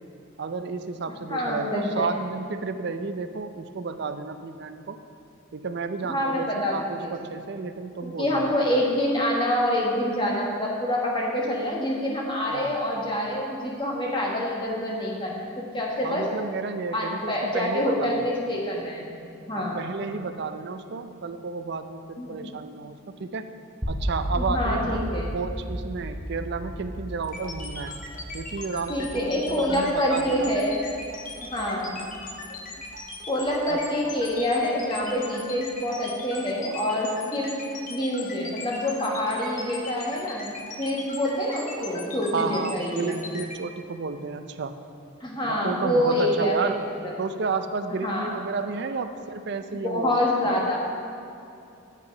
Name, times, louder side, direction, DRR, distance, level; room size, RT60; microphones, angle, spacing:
voice 1, 0.4-5.0 5.5-8.5 12.5-12.7 16.0-18.2 19.5-23.5 23.9-28.0 28.3-30.5 33.7-33.8 42.3-44.7 45.5-46.9 47.2-50.2, right 4 dB, 50° right, 9 dB, 0.4 m, -32 dB
voice 2, 1.3-2.1 6.0-7.1 8.0-16.3 16.9-19.1 19.5-19.8 22.2-22.4 24.4-25.3 28.9-30.8 31.4-32.0 33.3-37.6 37.9-40.5 40.8-43.2 45.2-46.7 47.0-47.3 48.0-48.3 49.8-50.8, left 1 dB, 20° left, -3 dB, 1.3 m, -26 dB
sound 1, 23.8-33.8, equal, 10° right, 0.8 m, -35 dB
sound 2, 27.2-43.6, left 3 dB, 40° left, 0.9 m, -39 dB
9.0 x 5.8 x 5.3 m, 2.6 s
head